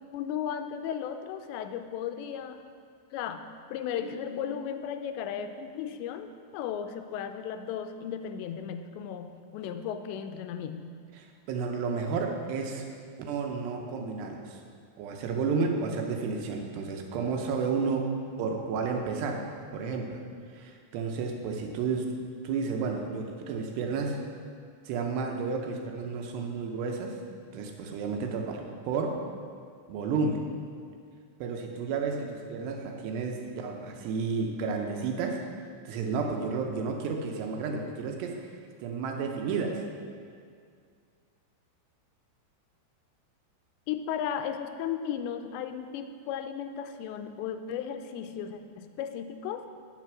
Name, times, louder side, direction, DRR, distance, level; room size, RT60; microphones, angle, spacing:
voice 1, 0.1-2.6 3.1-10.9 43.9-49.7, left 8 dB, 85° left, 8 dB, 2.7 m, -35 dB
voice 2, 11.2-12.9 13.2-14.6 15.0-18.1 18.4-19.5 19.7-20.2 20.5-22.1 22.4-24.2 24.9-27.2 27.5-29.2 29.9-30.4 31.4-35.4 35.9-38.5 38.8-39.8, right 4 dB, 75° right, 2 dB, 2.9 m, -31 dB
8.9 x 7.6 x 6.1 m, 2.1 s
omnidirectional pair, 5.1 m